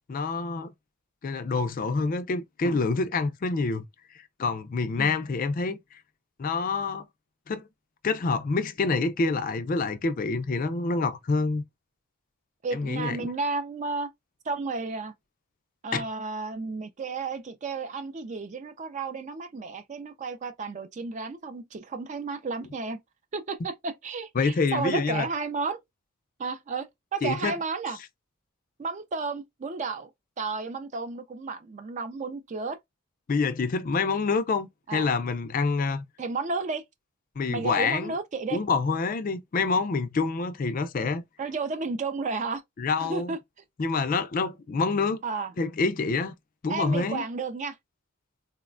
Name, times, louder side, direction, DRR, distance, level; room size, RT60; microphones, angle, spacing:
voice 1, 0.1-0.7 1.2-3.8 4.1-6.0 6.4-7.1 7.5-7.7 8.0-11.6 12.7-13.3 15.9-16.0 24.4-25.3 27.2-27.6 33.3-36.1 37.4-38.2 38.5-41.2 42.8-43.4 43.8-45.2 45.6-46.3 46.6-47.3, left 4 dB, 40° left, 0.4 m, -27 dB
voice 2, 12.6-14.1 14.5-15.1 15.8-23.0 23.3-25.8 26.4-28.0 28.8-30.1 30.4-32.8 34.9-35.1 36.2-36.8 37.5-38.6 41.4-42.6 43.0-43.4 45.2-45.5 46.7-47.8, right 4 dB, 35° right, 0.4 m, -32 dB
3.8 x 2.1 x 2.4 m
head